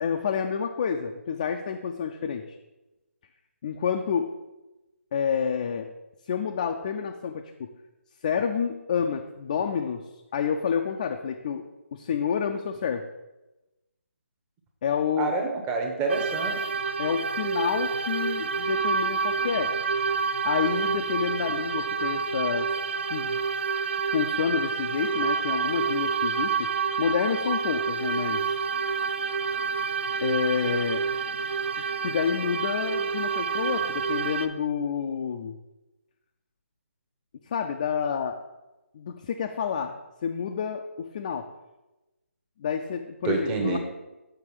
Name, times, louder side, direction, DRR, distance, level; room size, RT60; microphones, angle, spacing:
voice 1, 0.0-2.5 3.6-4.3 5.1-5.9 6.3-7.7 8.2-13.1 14.8-15.4 17.0-19.7 20.4-22.7 23.1-23.4 24.1-26.7 27.0-28.5 29.5-29.8 30.2-31.0 32.0-35.6 37.5-38.4 38.9-39.9 40.2-41.5 42.6-43.8, left 7 dB, 30° left, 4 dB, 0.4 m, -29 dB
voice 2, 15.2-16.6 43.2-43.8, right 4 dB, 15° right, 2 dB, 0.8 m, -27 dB
sound 1, 16.1-34.5, right 5 dB, 50° right, 0.5 m, -28 dB
6.9 x 4.9 x 4.7 m, 1.0 s
figure-of-eight pair, 150°, 8 cm